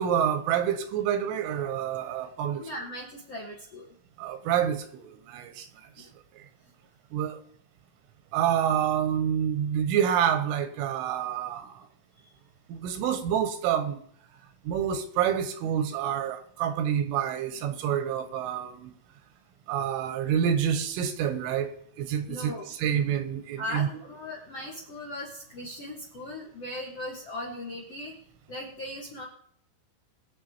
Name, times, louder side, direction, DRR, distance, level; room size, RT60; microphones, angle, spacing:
voice 1, 0.0-2.7 4.2-5.7 6.0-6.1 7.1-7.4 8.3-11.9 12.7-14.0 14.7-18.9 19.7-21.7 22.0-23.9, right 9 dB, 90° right, 3.7 m, -28 dB
voice 2, 2.6-3.9 6.0-6.1 12.2-12.3 22.3-22.7 23.6-28.1 28.5-29.3, left 1 dB, 55° left, 1.7 m, -38 dB
21.5 x 7.5 x 4.5 m
omnidirectional pair, 5.5 m